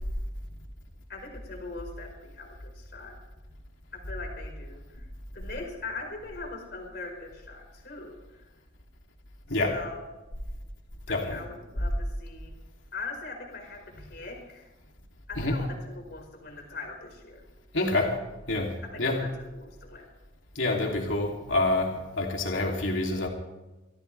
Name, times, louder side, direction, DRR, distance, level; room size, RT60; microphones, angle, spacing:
voice 1, 1.1-3.1 3.9-5.0 5.3-8.2 9.5-10.0 11.1-12.6 12.9-14.7 15.3-17.4 18.8-20.1, left 3 dB, 50° left, 1 dB, 5.0 m, -41 dB
voice 2, 9.5-9.8 11.1-11.4 15.3-15.6 17.7-18.2 18.5-18.7 19.0-19.2 20.5-23.3, left 2 dB, 70° left, 0 dB, 3.0 m, -27 dB
25.5 x 16.0 x 3.4 m, 1.1 s
head